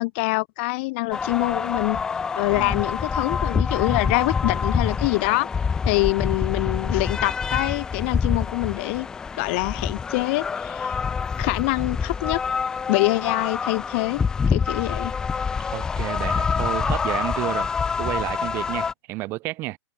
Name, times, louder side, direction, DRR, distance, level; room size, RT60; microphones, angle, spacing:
voice 1, 0.0-2.0 2.3-5.5 5.8-9.1 9.3-10.9 11.4-12.4 12.9-14.2 14.5-15.1, left 25 dB, 25° left, 1.6 m, -25 dB
sound 1, 1.1-18.9, left 5 dB, 5° left, 0.5 m, -26 dB
voice 2, 15.7-17.7 18.0-19.8, right 19 dB, 15° right, 0.9 m, -30 dB
hypercardioid pair, 180°, 14 cm